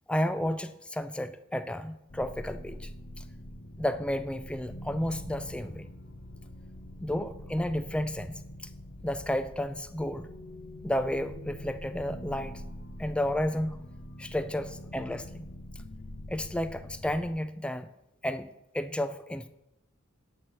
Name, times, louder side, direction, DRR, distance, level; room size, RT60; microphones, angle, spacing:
voice 1, 0.1-2.9 3.8-5.8 7.0-8.4 9.0-10.3 10.8-12.6 13.0-13.9 14.2-15.5 16.3-17.9 18.2-19.5, left 1 dB, 5° left, 11 dB, 0.4 m, -32 dB
sound 1, 2.1-17.3, left 1 dB, 55° left, 0.9 m, -44 dB
9.4 x 4.5 x 6.4 m, 0.89 s
head